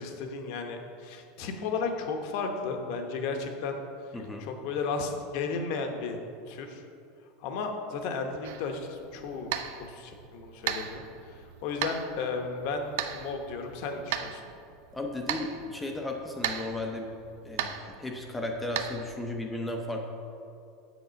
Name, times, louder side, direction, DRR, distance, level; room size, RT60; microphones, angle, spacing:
voice 1, 0.0-3.8 4.4-6.2 6.5-6.8 7.4-9.5 9.8-14.4, left 4 dB, 55° left, 5 dB, 1.0 m, -34 dB
voice 2, 4.1-4.5 14.9-17.1 17.4-20.0, left 2 dB, 5° left, 1 dB, 0.6 m, -35 dB
sound 1, 8.4-19.1, right 9 dB, 70° right, 0.5 m, -38 dB
8.1 x 6.6 x 5.2 m, 2.5 s
supercardioid pair, 165°, 0 cm